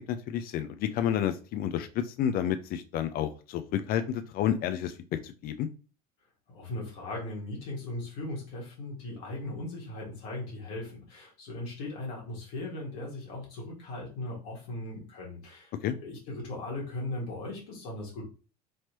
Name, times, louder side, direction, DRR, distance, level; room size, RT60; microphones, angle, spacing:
voice 1, 0.0-5.0 5.2-5.7 15.8-15.9, left 10 dB, 50° left, 9 dB, 0.4 m, -30 dB
voice 2, 6.5-15.7 16.0-18.2, left 2 dB, 70° left, -3 dB, 1.5 m, -38 dB
3.1 x 2.9 x 2.9 m, 0.34 s
hypercardioid pair, 70°, 20 cm